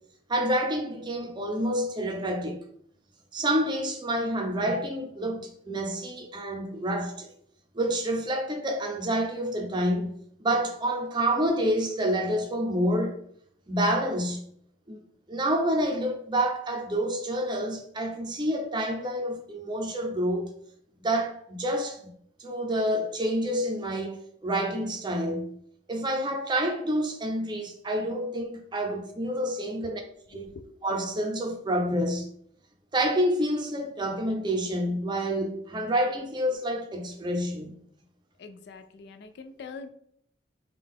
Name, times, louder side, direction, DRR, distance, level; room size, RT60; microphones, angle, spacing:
voice 1, 0.3-2.6 3.3-7.3 7.7-13.1 13.7-14.4 14.9-20.5 21.0-22.0 22.4-25.5 25.9-30.0 30.3-30.5 30.8-32.3 32.9-37.7, right 1 dB, 25° right, 0.5 m, -28 dB
voice 2, 38.4-39.9, left 4 dB, 60° left, 0.3 m, -43 dB
3.6 x 2.3 x 3.5 m
head